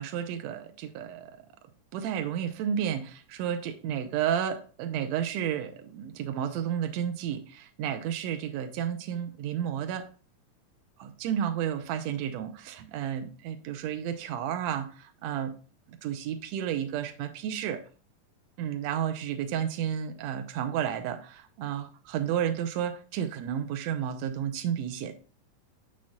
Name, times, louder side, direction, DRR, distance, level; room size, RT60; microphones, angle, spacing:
voice 1, 0.0-1.4 1.9-10.1 11.0-15.6 16.0-17.8 18.6-25.1, right 9 dB, 80° right, 1.6 m, -32 dB
8.5 x 7.2 x 2.4 m
omnidirectional pair, 3.8 m